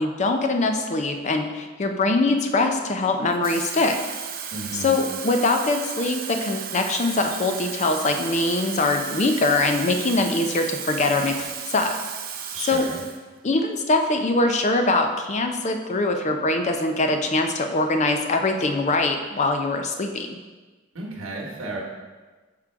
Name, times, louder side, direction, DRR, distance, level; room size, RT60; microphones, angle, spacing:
voice 1, 0.0-4.0 4.7-11.9 12.6-12.8 13.4-20.4, left 2 dB, 35° left, 5 dB, 0.5 m, -23 dB
Water tap faucet / Fill (with liquid), 3.3-13.2 13.6-13.8, right 8 dB, 45° right, 0.5 m, -34 dB
voice 2, 4.5-5.0 12.5-13.0 20.9-21.8, right 2 dB, 85° right, -1 dB, 1.2 m, -33 dB
6.0 x 3.7 x 4.5 m, 1.3 s
head